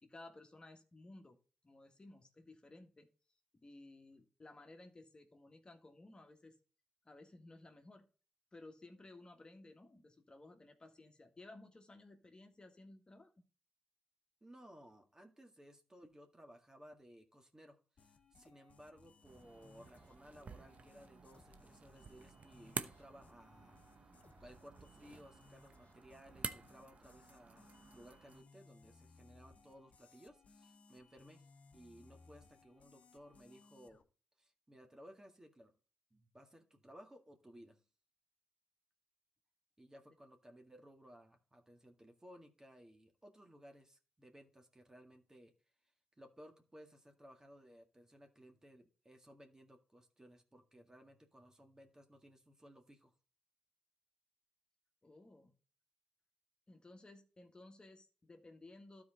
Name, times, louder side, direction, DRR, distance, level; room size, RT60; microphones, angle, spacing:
voice 1, 0.0-1.4 1.6-3.1 3.5-6.5 7.0-8.0 8.5-13.3 55.0-55.5 56.7-59.0, left 2 dB, 35° left, 4 dB, 1.7 m, -57 dB
voice 2, 14.4-23.8 24.4-31.5 31.7-34.0 34.4-35.7 36.1-37.8 39.8-45.5 46.2-53.1, equal, 20° right, 4 dB, 1.9 m, -59 dB
sound 1, 18.0-34.0, left 4 dB, 55° left, 1.1 m, -65 dB
sound 2, 19.2-28.4, right 5 dB, 55° right, 0.8 m, -50 dB
12.5 x 4.8 x 3.9 m, 0.36 s
supercardioid pair, 50°, 3 cm